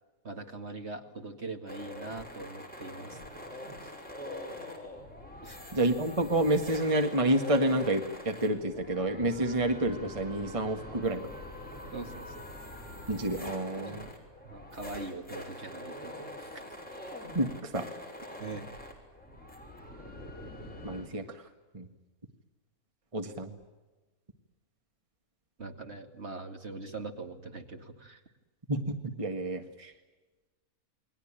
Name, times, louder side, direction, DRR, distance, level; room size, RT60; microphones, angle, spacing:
voice 1, 0.2-3.5 3.8-3.9 5.4-5.6 11.9-12.3 14.0-14.2 14.4-16.5 18.4-18.7 25.6-28.2, right 3 dB, 45° right, 5 dB, 2.5 m, -42 dB
sound 1, 1.7-21.1, left 1 dB, 5° left, 5.9 m, -44 dB
voice 2, 5.7-11.2 13.1-14.0 17.3-17.9 20.8-21.4 21.7-21.9 23.1-23.5 28.7-29.9, right 1 dB, 20° right, 6 dB, 1.8 m, -29 dB
29.0 x 22.0 x 8.9 m, 1.2 s
omnidirectional pair, 1.5 m